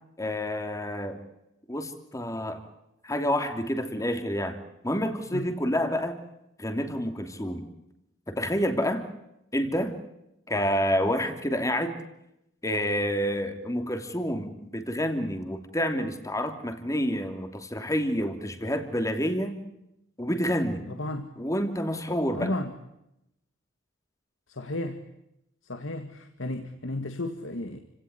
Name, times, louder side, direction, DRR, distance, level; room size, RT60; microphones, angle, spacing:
voice 1, 0.2-1.2 1.7-2.6 3.0-4.6 4.8-6.2 6.6-7.7 8.3-9.1 9.5-10.0 10.5-12.0 12.6-19.6 20.2-20.9 21.4-22.6, equal, 15° left, 7 dB, 2.9 m, -28 dB
voice 2, 20.9-21.3 22.4-22.7 24.5-25.0 25.6-27.8, left 2 dB, 75° left, 7 dB, 2.0 m, -33 dB
29.5 x 18.0 x 9.6 m, 0.85 s
head